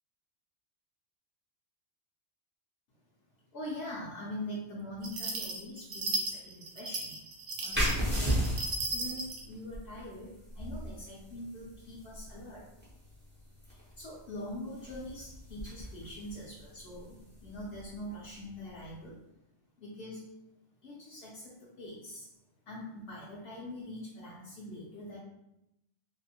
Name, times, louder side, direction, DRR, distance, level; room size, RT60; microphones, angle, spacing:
voice 1, 3.5-7.2 7.6-8.6 8.9-12.7 13.7-19.2 19.8-20.2 20.8-22.3 22.7-25.2, left 1 dB, 65° left, -6 dB, 0.9 m, -43 dB
sound 1, 5.0-9.4, right 2 dB, 85° right, 0.9 m, -36 dB
sound 2, 7.7-19.0, equal, 15° right, 0.5 m, -37 dB
2.7 x 2.5 x 2.8 m, 0.85 s
omnidirectional pair, 1.2 m